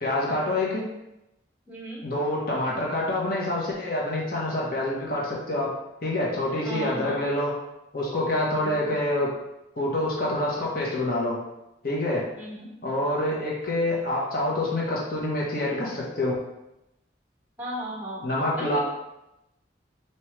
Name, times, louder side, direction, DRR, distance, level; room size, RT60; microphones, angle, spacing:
voice 1, 0.0-0.8 2.0-5.7 6.0-7.5 7.9-9.3 9.8-11.4 11.8-12.3 12.8-16.4 18.2-18.8, left 1 dB, 50° left, -4 dB, 1.0 m, -26 dB
voice 2, 1.7-2.0 6.6-7.2 8.6-8.9 12.3-12.7 17.6-18.2 18.6-18.8, right 1 dB, 10° right, -4 dB, 1.0 m, -36 dB
4.5 x 3.0 x 3.1 m, 0.91 s
head